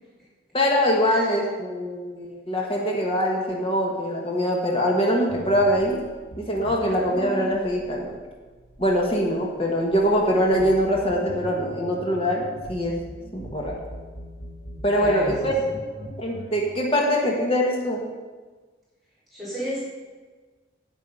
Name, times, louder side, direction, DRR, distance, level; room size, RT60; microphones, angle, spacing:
voice 1, 0.5-6.0 6.4-8.1 8.8-13.0 13.3-13.7 14.8-15.5 16.2-18.0, equal, 30° left, -1 dB, 1.3 m, -23 dB
sound 1, 5.3-16.6, equal, 75° left, 1.4 m, -41 dB
voice 2, 14.9-15.7 19.3-19.8, equal, ahead, -11 dB, 3.8 m, -33 dB
9.3 x 8.9 x 5.3 m, 1.4 s
head